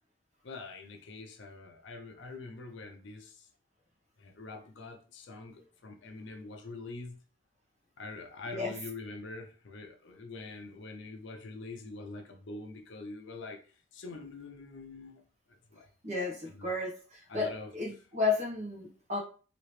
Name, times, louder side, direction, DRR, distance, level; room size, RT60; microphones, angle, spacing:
voice 1, 0.4-3.5 4.2-7.2 8.0-13.6 13.9-15.2 15.7-15.9 16.4-16.7 17.3-17.7, left 3 dB, 65° left, 4 dB, 0.6 m, -44 dB
voice 2, 16.0-16.9 17.3-19.2, left 3 dB, 35° right, -1 dB, 1.1 m, -32 dB
3.0 x 2.8 x 3.2 m, 0.39 s
head